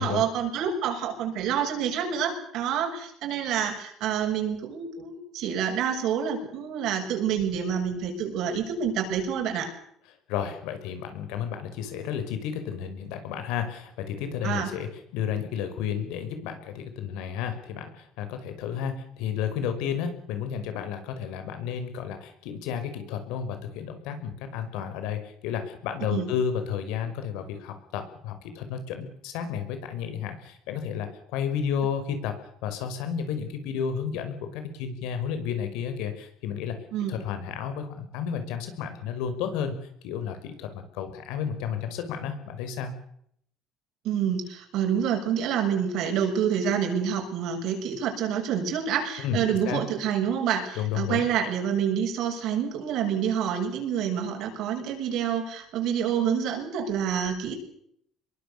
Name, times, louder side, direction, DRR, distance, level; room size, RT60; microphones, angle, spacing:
voice 1, 0.0-9.7 14.4-14.7 26.1-26.3 36.9-37.1 44.0-57.5, right 8 dB, 55° right, 4 dB, 6.7 m, -27 dB
voice 2, 10.3-36.8 37.1-39.8 40.0-42.9 49.2-49.4 49.7-49.8 50.8-51.2, left 8 dB, 90° left, 8 dB, 5.7 m, -32 dB
26.5 x 22.5 x 6.9 m, 0.70 s
cardioid pair, 175°, 0 cm